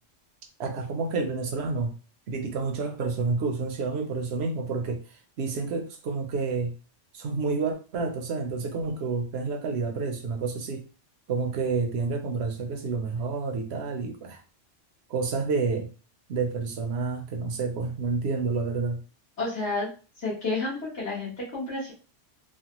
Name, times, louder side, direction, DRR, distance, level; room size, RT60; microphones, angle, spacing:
voice 1, 0.6-1.9 2.3-5.0 5.4-6.7 7.1-10.8 11.3-14.4 15.1-15.9 16.3-19.0, right 4 dB, 65° right, 4 dB, 0.8 m, -29 dB
voice 2, 19.4-19.9 20.2-21.9, left 3 dB, 65° left, -7 dB, 1.3 m, -30 dB
3.3 x 2.1 x 2.9 m, 0.36 s
omnidirectional pair, 1.3 m